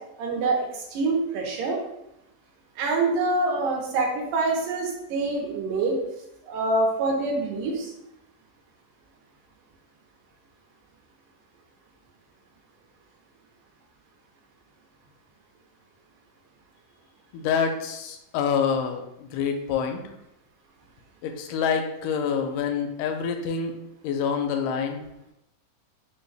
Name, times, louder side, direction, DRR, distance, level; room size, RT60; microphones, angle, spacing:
voice 1, 0.2-1.8 2.8-6.0 6.4-7.9, right 3 dB, 75° right, 0 dB, 2.3 m, -25 dB
voice 2, 17.3-20.0 21.2-23.7 24.0-25.0, left 6 dB, 80° left, 4 dB, 1.9 m, -27 dB
5.3 x 2.2 x 3.3 m, 0.86 s
omnidirectional pair, 4.0 m